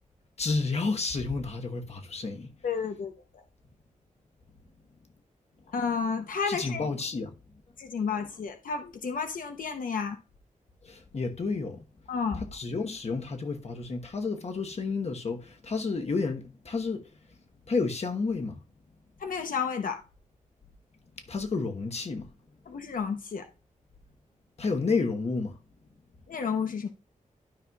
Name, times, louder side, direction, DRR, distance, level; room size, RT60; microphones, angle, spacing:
voice 1, 0.4-2.5 6.5-7.3 10.8-11.8 12.3-17.1 17.7-18.6 21.3-22.3 24.6-25.5, left 4 dB, 50° left, 1.2 m, -31 dB
voice 2, 2.6-3.1 5.7-6.9 7.8-10.2 12.1-12.4 19.2-20.0 22.7-23.4 26.3-26.9, left 6 dB, 90° left, 0.8 m, -31 dB
12.0 x 5.5 x 2.4 m
wide cardioid pair, 105°, 14 cm